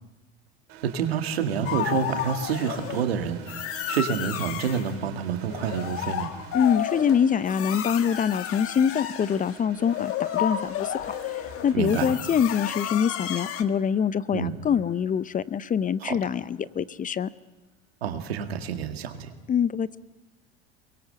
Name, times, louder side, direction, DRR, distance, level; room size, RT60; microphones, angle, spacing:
sound 1, 0.7-17.5, right 8 dB, 65° right, 3.8 m, -49 dB
voice 1, 0.8-6.3 11.7-12.2 14.3-14.6 16.0-16.3 18.0-19.3, right 7 dB, 90° right, 6 dB, 2.1 m, -28 dB
sound 2, 1.6-3.1 3.5-4.9 5.4-13.6, left 10 dB, 50° left, 1.7 m, -32 dB
voice 2, 6.5-17.3 19.5-20.0, left 7 dB, 25° left, 17 dB, 0.7 m, -25 dB
23.5 x 21.5 x 8.0 m, 1.1 s
hypercardioid pair, 85°, 30 cm